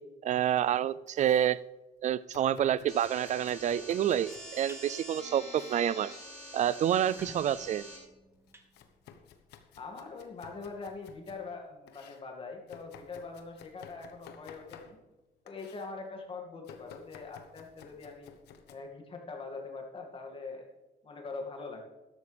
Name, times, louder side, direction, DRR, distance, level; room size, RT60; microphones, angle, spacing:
voice 1, 0.2-1.6 2.0-6.1 6.5-7.8, right 10 dB, 45° right, 19 dB, 0.4 m, -28 dB
Domestic sounds home sounds, 0.8-1.6 2.3-4.7 5.4-5.9 6.7-7.3 7.7-11.5 11.9-15.2 15.5-15.9 16.6-18.8, left 8 dB, 80° left, 1.1 m, -55 dB
sound 1, 2.9-8.0, equal, 5° left, 4.9 m, -46 dB
sound 2, 4.7-4.9 5.3-5.5 5.9-6.0 6.2-6.3 6.9-9.4, right 2 dB, 15° right, 1.4 m, -52 dB
voice 2, 9.8-15.0 15.4-18.3 18.7-20.7 21.0-21.8, left 4 dB, 30° left, 2 dB, 2.3 m, -43 dB
13.0 x 11.5 x 3.5 m, 1.1 s
cardioid pair, 110°, 17 cm